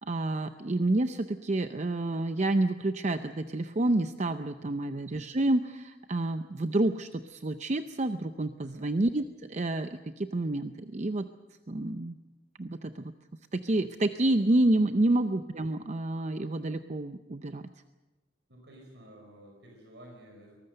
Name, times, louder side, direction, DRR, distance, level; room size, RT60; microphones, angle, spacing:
voice 1, 0.0-11.3 11.7-12.2 12.6-13.1 13.5-17.7, right 2 dB, 40° right, 9 dB, 0.6 m, -29 dB
voice 2, 8.6-8.9 18.5-20.6, right 1 dB, 80° right, 1 dB, 5.1 m, -52 dB
23.5 x 19.0 x 6.7 m, 1.1 s
head